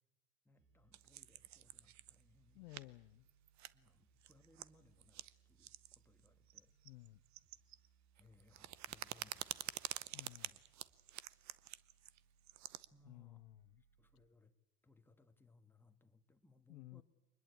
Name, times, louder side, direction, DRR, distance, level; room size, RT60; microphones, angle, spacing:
voice 1, 0.5-2.7 3.7-6.7 8.1-10.6 11.3-11.4 12.9-13.5 14.0-14.5 14.8-17.0, left 2 dB, 5° left, 1.8 m, -69 dB
sound 1, 0.6-14.3, right 7 dB, 70° right, 7.2 m, -73 dB
sound 2, 0.9-2.2 2.7-2.8 3.3-3.9 4.2-4.7 5.0-5.3 5.6-6.0 6.2-7.9 8.2-12.9, right 13 dB, 35° right, 0.8 m, -48 dB
voice 2, 2.5-3.2 6.8-7.2 10.1-10.5 13.0-13.8 16.7-17.0, left 20 dB, 70° left, 0.8 m, -55 dB
23.5 x 20.0 x 8.4 m
hypercardioid pair, 90°, 46 cm